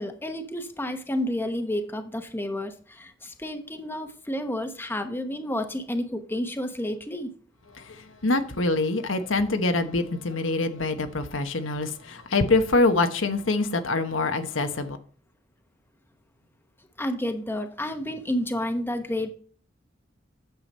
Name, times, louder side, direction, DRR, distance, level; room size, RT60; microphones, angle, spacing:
voice 1, 0.0-7.3 17.0-19.3, left 1 dB, 10° left, 1.0 m, -30 dB
voice 2, 7.8-15.0, left 3 dB, 85° left, 1.1 m, -25 dB
9.4 x 6.9 x 4.2 m
head